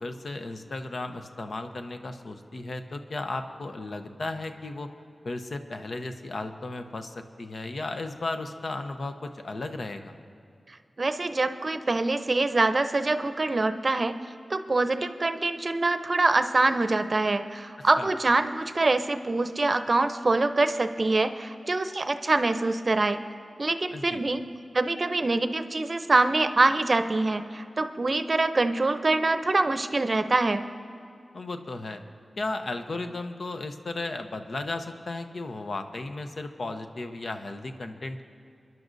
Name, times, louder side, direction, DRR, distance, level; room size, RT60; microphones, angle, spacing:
voice 1, 0.0-4.9 5.2-10.1 18.0-18.1 23.9-24.2 31.3-32.0 32.4-38.2, left 2 dB, 70° left, 7 dB, 0.8 m, -35 dB
voice 2, 11.0-14.2 14.5-23.2 23.6-24.4 24.7-30.6, right 2 dB, 50° right, 10 dB, 0.6 m, -24 dB
26.5 x 10.5 x 2.6 m, 2.5 s
cardioid pair, 40°, 0 cm